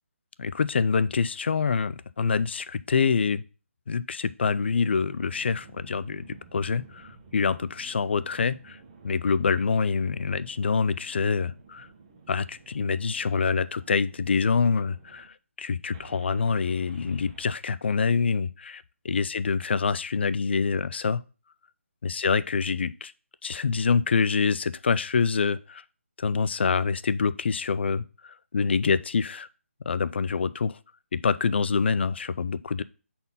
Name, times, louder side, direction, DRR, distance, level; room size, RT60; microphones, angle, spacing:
voice 1, 0.4-3.4 3.9-8.8 9.0-11.9 12.3-18.8 19.1-21.2 22.0-23.1 23.4-25.8 26.2-29.5 29.9-30.8 31.1-32.8, left 5 dB, 50° left, 0.4 m, -26 dB
sound 1, 4.6-15.3 15.9-17.4, right 4 dB, 25° right, 0.9 m, -52 dB
5.6 x 4.3 x 5.4 m
hypercardioid pair, 170°, 7 cm